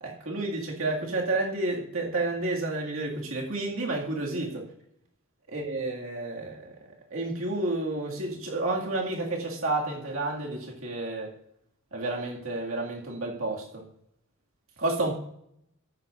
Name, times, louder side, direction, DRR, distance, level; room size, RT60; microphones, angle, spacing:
voice 1, 0.0-4.6 5.5-6.7 7.1-11.3 11.9-13.8 14.8-15.2, right 2 dB, 65° right, -1 dB, 2.2 m, -30 dB
13.5 x 11.5 x 2.6 m, 0.74 s
head